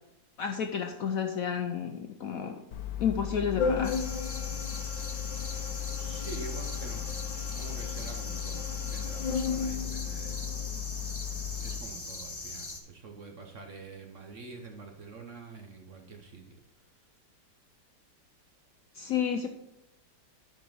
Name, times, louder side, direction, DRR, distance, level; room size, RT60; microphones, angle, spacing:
voice 1, 0.4-2.6 3.0-4.0 19.0-19.5, left 7 dB, 70° left, 5 dB, 0.8 m, -31 dB
Organ, 2.7-11.8, left 7 dB, 85° left, 1.5 m, -34 dB
sound 1, 3.8-12.8, left 2 dB, 25° left, 0.7 m, -41 dB
voice 2, 6.0-7.1 7.3-10.5 11.6-16.6, right 4 dB, 55° right, 4 dB, 1.0 m, -46 dB
9.7 x 4.8 x 5.5 m, 0.87 s
omnidirectional pair, 2.0 m